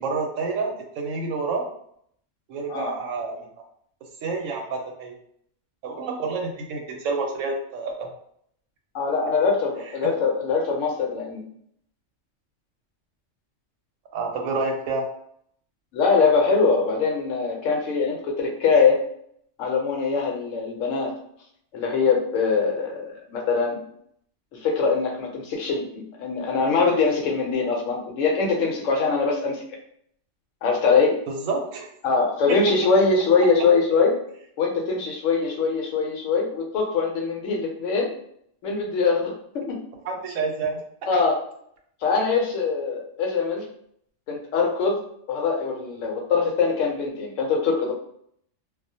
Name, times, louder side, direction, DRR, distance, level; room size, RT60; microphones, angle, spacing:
voice 1, 0.0-1.6 2.5-3.5 4.2-5.1 5.8-8.1 10.0-10.1 14.1-15.0 31.3-31.9 32.5-32.7 33.6-33.7 40.0-40.8, right 4 dB, 85° right, 2 dB, 1.0 m, -28 dB
voice 2, 8.9-11.4 15.9-19.0 19.6-21.2 21.7-23.8 24.6-29.6 30.6-31.2 32.0-34.2 34.6-38.1 38.6-39.8 41.1-41.4 42.0-43.6 44.3-47.9, left 4 dB, 75° left, 1 dB, 1.0 m, -22 dB
2.3 x 2.0 x 2.6 m, 0.67 s
omnidirectional pair, 1.3 m